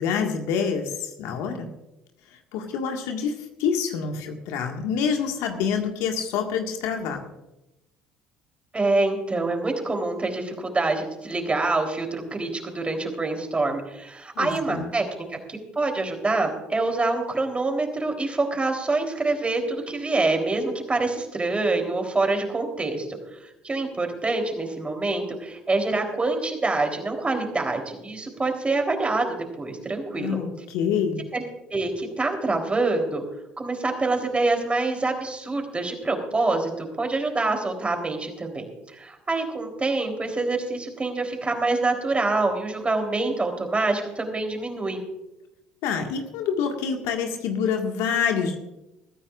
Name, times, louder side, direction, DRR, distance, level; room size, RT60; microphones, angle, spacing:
voice 1, 0.0-1.7 2.5-7.2 14.4-14.9 30.2-31.3 45.8-48.6, left 6 dB, 65° left, 3 dB, 1.8 m, -27 dB
voice 2, 8.7-29.3 29.6-30.4 31.3-31.4 31.7-33.2 33.6-38.6 39.0-45.0, right 3 dB, 20° right, 4 dB, 3.6 m, -26 dB
21.0 x 14.5 x 2.5 m, 0.92 s
hypercardioid pair, 55°, 5 cm